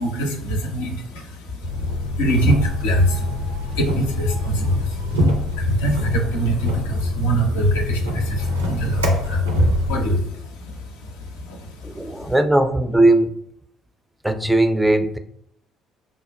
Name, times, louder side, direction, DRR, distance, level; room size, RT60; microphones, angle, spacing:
voice 1, 0.0-12.3, right 1 dB, 75° left, 2 dB, 0.5 m, -24 dB
sound 1, 1.6-10.1, left 1 dB, 85° right, 0.5 m, -24 dB
voice 2, 11.8-13.3 14.2-15.2, right 1 dB, 5° right, 8 dB, 0.3 m, -18 dB
5.1 x 2.1 x 2.2 m, 0.71 s
figure-of-eight pair, 50°, 0 cm